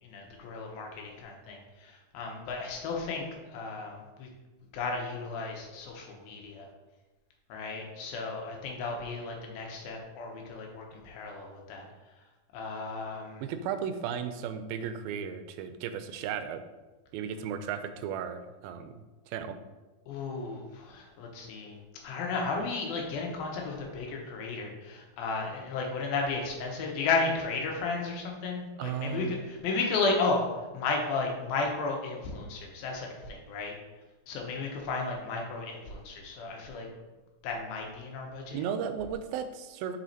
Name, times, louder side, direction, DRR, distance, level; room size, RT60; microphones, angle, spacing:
voice 1, 0.0-4.3 4.7-6.7 7.5-11.9 12.5-13.5 20.1-21.8 22.0-30.4 30.7-33.8 34.3-36.9 37.4-38.6, left 3 dB, 85° left, 1 dB, 2.9 m, -34 dB
voice 2, 13.4-16.6 17.1-18.9 19.3-19.6 28.8-29.4 38.5-40.0, right 7 dB, 85° right, 9 dB, 2.4 m, -35 dB
7.3 x 6.1 x 2.8 m, 1.1 s
omnidirectional pair, 4.2 m